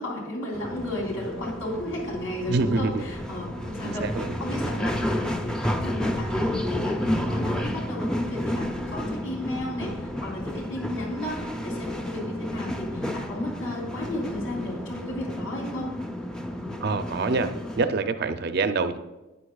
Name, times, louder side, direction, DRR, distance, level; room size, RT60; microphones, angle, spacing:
voice 1, 0.0-15.9, left 1 dB, 80° left, -2 dB, 3.4 m, -34 dB
sound 1, 0.5-17.9, equal, 5° left, 0.5 m, -31 dB
voice 2, 2.5-3.0 3.8-4.4 16.8-19.0, right 3 dB, 50° right, 9 dB, 0.5 m, -26 dB
11.5 x 9.6 x 2.4 m, 1.1 s
head